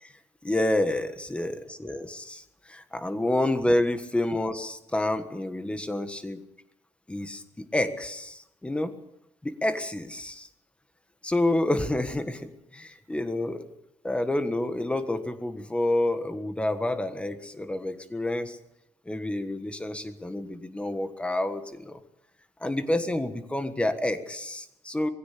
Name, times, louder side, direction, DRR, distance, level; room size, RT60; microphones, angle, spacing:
voice 1, 0.4-2.4 2.7-6.4 7.1-7.4 7.7-8.9 9.4-10.5 11.2-13.7 14.0-18.6 19.1-22.0 22.6-25.1, left 1 dB, 10° left, 10 dB, 1.5 m, -28 dB
21.0 x 16.0 x 8.4 m, 0.80 s
wide cardioid pair, 175°, 12 cm